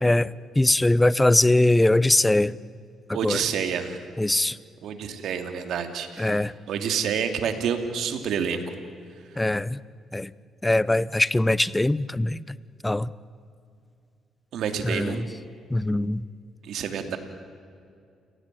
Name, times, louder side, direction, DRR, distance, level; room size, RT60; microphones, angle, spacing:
voice 1, 0.0-2.6 3.2-3.4 4.2-4.6 6.2-6.5 9.4-9.8 10.1-10.3 10.6-12.6 12.8-13.1 14.8-15.3 15.7-16.2, left 1 dB, 10° left, 19 dB, 0.7 m, -21 dB
voice 2, 3.1-4.0 4.8-8.6 14.5-15.3 16.6-17.2, right 7 dB, 75° right, 7 dB, 2.8 m, -28 dB
29.5 x 18.0 x 9.3 m, 2.4 s
cardioid pair, 90°, 0 cm